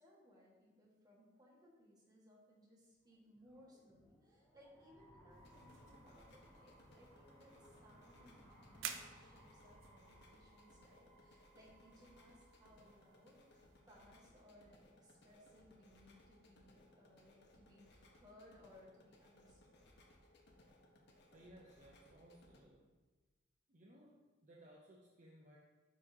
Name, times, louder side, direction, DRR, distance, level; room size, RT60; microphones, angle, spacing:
voice 1, 0.0-19.8, left 1 dB, 20° right, -5 dB, 1.6 m, -65 dB
sound 1, 3.1-14.1, right 1 dB, 5° left, 1.4 m, -65 dB
sound 2, 5.3-22.6, left 1 dB, 60° left, 0.9 m, -66 dB
sound 3, 5.3-13.8, right 8 dB, 80° right, 0.5 m, -55 dB
voice 2, 21.3-22.9 23.7-25.6, right 1 dB, 40° right, -3 dB, 0.7 m, -62 dB
11.0 x 3.8 x 2.8 m, 1.2 s
head